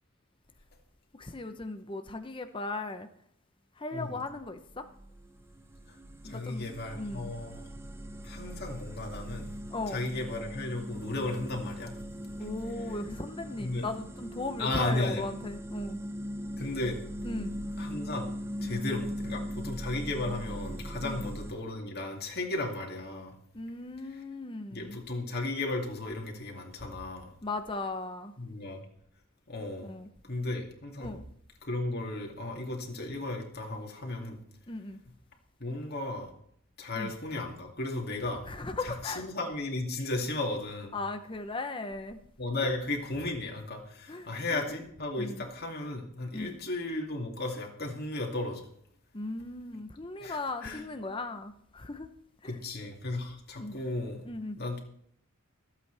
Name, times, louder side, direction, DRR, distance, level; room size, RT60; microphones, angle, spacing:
voice 1, 1.1-3.1 3.8-4.8 6.2-7.3 9.7-10.0 12.4-16.0 17.2-17.5 18.7-18.8 21.0-21.3 23.5-25.0 27.4-28.3 29.8-30.1 31.0-31.2 34.7-35.0 37.0-37.1 38.5-39.3 40.9-42.2 42.6-42.7 44.1-44.8 45.2-45.4 46.3-46.6 49.1-52.1 52.4-52.6 53.6-53.8 54.2-54.6, left 2 dB, 25° left, 0.7 m, -37 dB
sound 1, 4.4-21.5, equal, 10° right, 0.7 m, -40 dB
voice 2, 6.2-7.6 8.2-9.5 9.9-11.9 13.6-13.8 14.6-15.2 16.6-17.0 17.8-18.3 18.6-23.3 24.7-27.3 28.4-28.8 29.5-29.9 30.3-31.1 31.6-34.4 35.6-36.3 36.8-38.4 38.8-41.0 42.4-48.7 50.2-50.8 52.4-54.3 54.6-54.8, left 2 dB, 50° left, 2.5 m, -35 dB
25.5 x 8.4 x 3.4 m
head